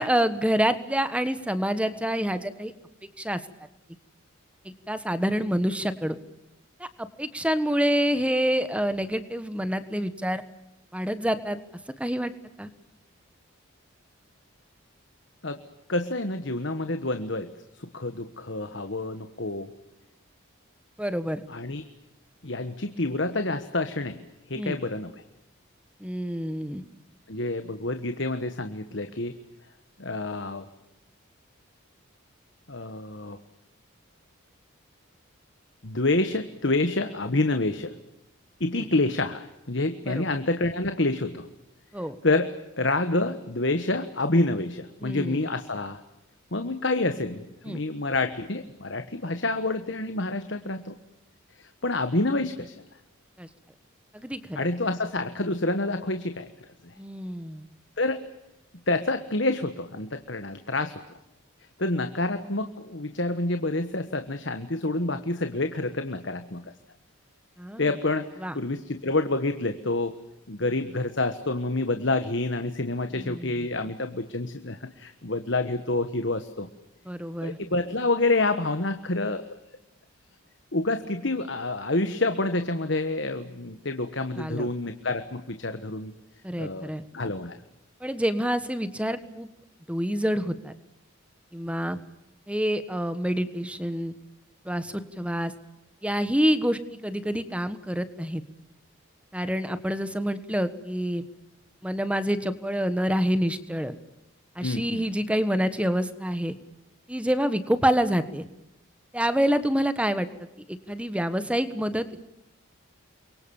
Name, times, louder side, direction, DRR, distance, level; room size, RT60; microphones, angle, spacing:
voice 1, 0.0-2.7 3.2-3.4 4.6-6.2 6.8-10.4 10.9-11.6 12.0-12.3 12.6-12.7 21.0-21.4 24.5-24.8 26.0-26.8 38.7-38.9 40.1-40.2 41.9-42.1 45.0-45.5 47.6-47.8 53.4-53.5 54.1-54.6 57.0-57.6 67.6-67.9 68.4-68.6 73.1-73.7 77.1-77.6 84.4-84.7 86.4-87.0 88.0-89.5 89.9-90.7 91.5-92.0 92.5-94.1 94.6-95.5 96.0-98.4 99.3-101.2 101.8-103.9 104.5-106.5 107.1-108.4 109.1-110.3 110.7-112.1, equal, 5° right, 12 dB, 1.4 m, -27 dB
voice 2, 15.9-17.5 17.7-19.7 21.5-21.8 22.4-24.2 24.5-25.1 27.3-29.4 30.0-30.7 32.7-33.4 35.8-37.9 38.6-41.5 42.2-42.5 42.8-46.0 46.5-51.0 51.6-52.8 54.5-56.5 56.8-56.9 58.0-58.2 58.9-61.2 61.8-66.6 67.8-68.3 68.5-70.1 70.5-76.7 77.4-79.4 80.7-86.1 86.6-87.6 104.6-105.0, left 2 dB, 55° left, 9 dB, 1.4 m, -28 dB
29.0 x 23.5 x 7.2 m, 0.90 s
head